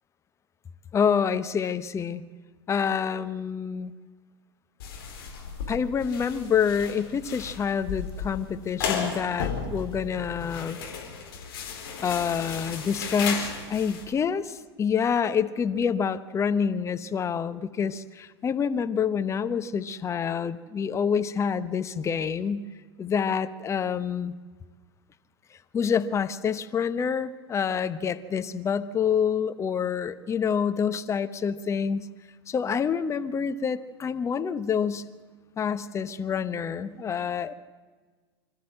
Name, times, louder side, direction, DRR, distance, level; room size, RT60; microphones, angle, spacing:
voice 1, 0.9-2.2 2.7-3.9 5.7-10.8 12.0-22.6 23.0-24.3 25.7-32.1 32.5-35.0 35.6-37.5, left 7 dB, 20° left, 11 dB, 0.9 m, -27 dB
sound 1, 4.8-14.0, left 5 dB, 65° left, 4.2 m, -35 dB
25.5 x 13.5 x 7.6 m, 1.4 s
figure-of-eight pair, 90°, 14 cm